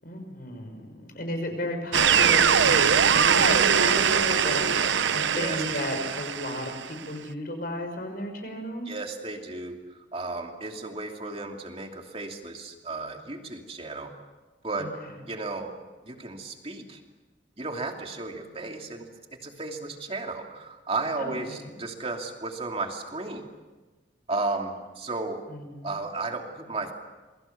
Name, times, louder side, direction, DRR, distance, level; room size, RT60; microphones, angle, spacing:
voice 1, 0.0-8.9 14.8-14.9 21.2-21.8 25.5-26.0, left 1 dB, 50° left, 5 dB, 5.9 m, -34 dB
sound 1, 1.9-6.9, right 7 dB, 80° right, 0.8 m, -22 dB
voice 2, 5.3-5.6 8.9-14.1 14.6-14.9 15.2-15.7 16.0-17.0 17.6-23.5 24.3-25.4 25.8-26.9, right 3 dB, 30° right, 3 dB, 2.9 m, -34 dB
28.0 x 23.0 x 7.3 m, 1.2 s
head